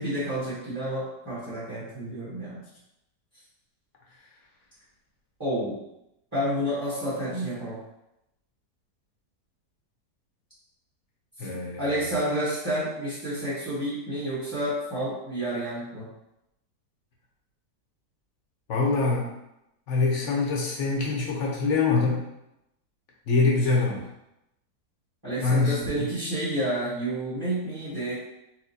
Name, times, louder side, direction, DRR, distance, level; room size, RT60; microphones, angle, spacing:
voice 1, 0.0-2.6 5.4-5.8 6.3-7.8 11.4-11.5 11.8-16.1 25.2-28.1, right 1 dB, 15° right, -12 dB, 1.2 m, -30 dB
voice 2, 11.4-11.8 18.7-19.3 19.9-22.2 23.3-24.1 25.4-26.1, left 3 dB, 55° left, -3 dB, 1.0 m, -24 dB
4.3 x 2.3 x 2.7 m, 0.87 s
omnidirectional pair, 1.7 m